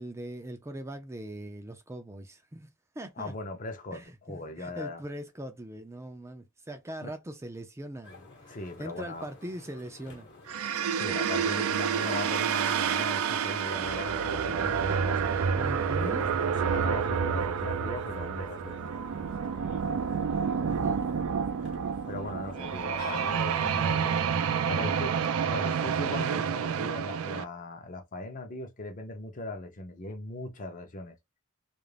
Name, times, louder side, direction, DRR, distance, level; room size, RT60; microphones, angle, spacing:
voice 1, 0.0-3.3 3.9-10.3 15.5-16.3 20.6-21.0, right 1 dB, 15° right, 0.4 m, -41 dB
voice 2, 3.2-5.0 7.0-7.1 8.5-9.3 11.0-15.3 16.0-18.8 22.1-24.3 24.7-31.2, left 2 dB, 35° left, 0.6 m, -39 dB
sound 1, 8.0-23.9, left 3 dB, 55° left, 1.0 m, -51 dB
sound 2, 10.5-27.4, right 7 dB, 80° right, 0.4 m, -29 dB
2.4 x 2.1 x 3.2 m
head